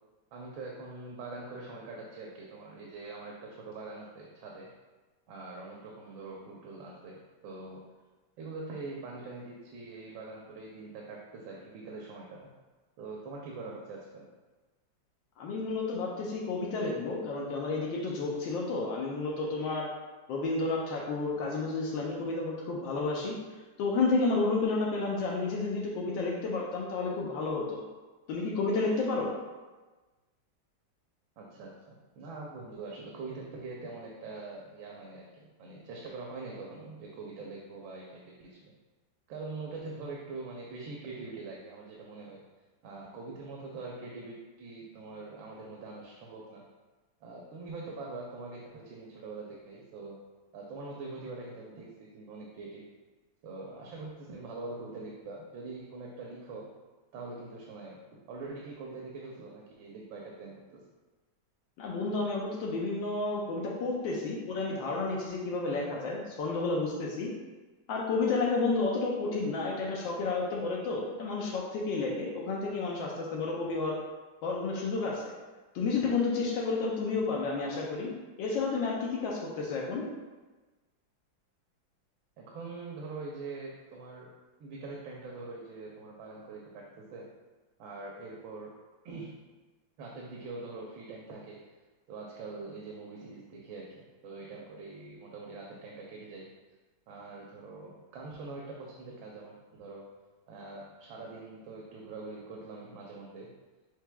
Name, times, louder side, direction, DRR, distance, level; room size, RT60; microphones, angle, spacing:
voice 1, 0.3-4.7 5.3-7.8 8.4-12.5 13.0-14.3 31.4-31.7 32.2-38.7 39.3-42.4 42.8-46.6 47.2-50.2 50.5-52.8 53.4-56.7 57.1-58.0 58.3-60.8 82.4-84.3 84.6-87.3 87.8-88.7 89.0-89.3 90.0-91.6 92.1-96.5 97.1-100.0 100.5-103.5, right 3 dB, 85° right, -2 dB, 1.4 m, -43 dB
voice 2, 15.4-19.9 20.3-23.4 23.8-27.8 28.3-29.3 61.8-67.3 67.9-74.0 74.4-75.3 75.7-78.1 78.4-80.1, left 3 dB, 80° left, -3 dB, 1.3 m, -31 dB
6.7 x 3.1 x 2.2 m, 1.2 s
omnidirectional pair, 2.1 m